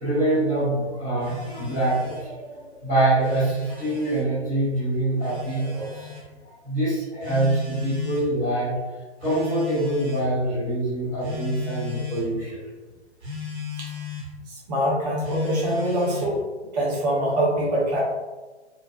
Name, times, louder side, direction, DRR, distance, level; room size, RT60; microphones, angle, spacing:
voice 1, 0.0-6.1 6.6-8.7 9.2-12.6, right 1 dB, 10° right, -15 dB, 0.4 m, -25 dB
Telephone, 1.2-2.3 3.0-4.3 5.2-6.3 7.2-8.3 9.2-10.3 11.2-12.3 13.2-14.3 15.2-16.4, left 3 dB, 60° right, 1.0 m, -35 dB
voice 2, 14.7-16.4 16.7-18.0, right 1 dB, 35° right, -5 dB, 0.9 m, -24 dB
2.5 x 2.3 x 2.3 m, 1.3 s
figure-of-eight pair, 130°, 35 cm